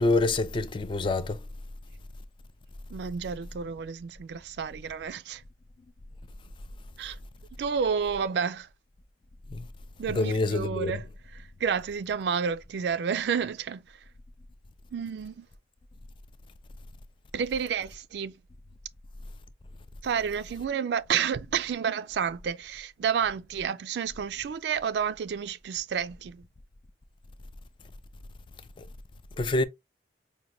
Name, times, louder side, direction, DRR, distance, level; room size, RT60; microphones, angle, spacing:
voice 1, 0.0-1.4 9.5-9.7 10.1-10.9 28.8-28.9 29.4-29.6, left 2 dB, 30° left, 0.3 m, -26 dB
voice 2, 2.9-5.4 7.0-7.2 7.6-8.7 10.0-11.1 11.6-13.8 14.9-15.5 17.3-18.3 20.0-26.5, right 7 dB, 75° right, 0.3 m, -30 dB
5.0 x 2.2 x 2.9 m
head